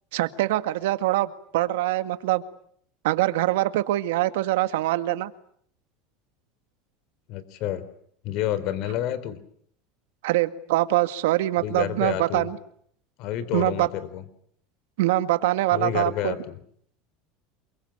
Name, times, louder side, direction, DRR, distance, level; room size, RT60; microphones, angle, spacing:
voice 1, 0.1-2.4 3.0-5.3 10.2-12.6 13.5-13.9 15.0-16.3, right 16 dB, 80° right, 11 dB, 2.0 m, -24 dB
voice 2, 7.3-7.8 8.2-9.4 11.6-12.5 13.2-14.2 15.7-16.6, left 12 dB, 55° left, 15 dB, 4.0 m, -29 dB
28.0 x 23.0 x 8.9 m, 0.65 s
supercardioid pair, 135°, 0 cm